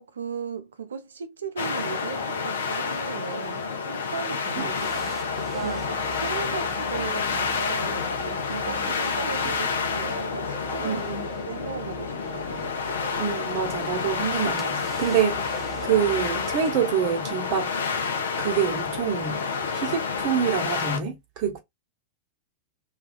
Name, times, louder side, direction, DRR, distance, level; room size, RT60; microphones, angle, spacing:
voice 1, 0.0-5.9 6.2-11.0 11.5-12.5, right 5 dB, 70° right, 0.4 m, -36 dB
sound 1, 1.6-21.0, left 5 dB, 65° left, 0.5 m, -29 dB
voice 2, 4.6-5.1 5.6-5.8 10.8-11.3 13.2-17.7 18.4-21.6, right 8 dB, 40° right, 0.9 m, -27 dB
sound 2, 4.7-16.6, right 6 dB, 15° right, 0.5 m, -43 dB
2.2 x 2.2 x 2.4 m
figure-of-eight pair, 90°, 0 cm